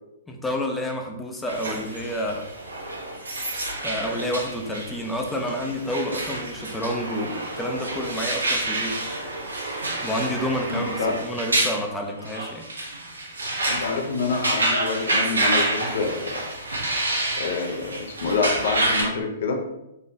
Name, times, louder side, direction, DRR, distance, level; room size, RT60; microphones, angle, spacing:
voice 1, 0.3-2.5 3.8-9.0 10.0-12.6, equal, 5° left, 1 dB, 0.6 m, -29 dB
sound 1, 1.5-19.0, right 2 dB, 75° right, 0.9 m, -28 dB
voice 2, 10.6-11.1 13.7-16.5 17.4-19.6, left 4 dB, 55° left, 4 dB, 0.6 m, -27 dB
3.9 x 2.9 x 2.8 m, 0.86 s
figure-of-eight pair, 115°, 0 cm